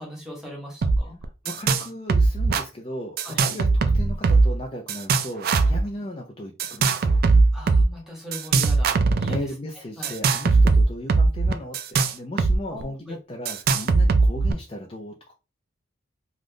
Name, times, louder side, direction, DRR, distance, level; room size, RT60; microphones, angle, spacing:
voice 1, 0.0-1.2 3.2-3.4 7.5-9.4 10.0-10.1 12.7-13.1, equal, 5° right, -2 dB, 1.0 m, -39 dB
sound 1, 0.8-1.0 1.2-1.8 2.1-2.6 3.2-4.6 4.9-5.8 6.6-7.9 8.3-9.4 10.0-12.6 12.8-12.9 13.5-14.5, right 4 dB, 50° right, 0.3 m, -19 dB
voice 2, 1.2-3.7 3.9-7.2 9.2-15.3, left 1 dB, 30° left, 0 dB, 0.4 m, -36 dB
2.6 x 2.4 x 3.4 m, 0.30 s
head